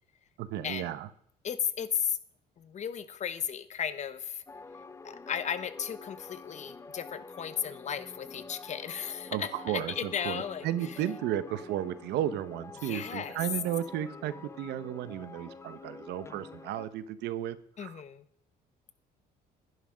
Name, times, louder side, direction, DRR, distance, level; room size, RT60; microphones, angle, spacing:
voice 1, 0.4-1.1 9.3-18.0, right 12 dB, 85° right, 15 dB, 1.0 m, -34 dB
voice 2, 1.4-2.2 2.6-4.4 5.0-10.7 12.8-13.4 17.8-18.2, left 8 dB, 45° left, 12 dB, 1.1 m, -35 dB
sound 1, 4.5-16.9, left 4 dB, 15° left, 0.6 m, -47 dB
11.0 x 11.0 x 5.1 m, 0.64 s
cardioid pair, 110°, 17 cm